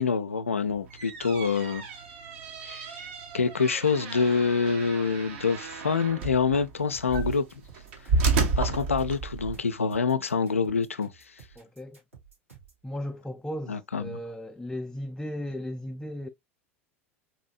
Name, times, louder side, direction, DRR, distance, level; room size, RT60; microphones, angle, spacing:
voice 1, 0.0-1.8 2.6-2.9 3.3-7.5 8.2-8.3 8.6-11.1 13.7-14.2, left 5 dB, 85° left, 0.3 m, -26 dB
sound 1, 0.7-9.6, right 4 dB, 60° right, 0.8 m, -32 dB
sound 2, 6.9-12.8, right 7 dB, 90° right, 2.2 m, -53 dB
voice 2, 11.6-12.0 12.8-16.3, equal, 5° left, 0.3 m, -36 dB
4.1 x 2.6 x 2.4 m
figure-of-eight pair, 80°, 7 cm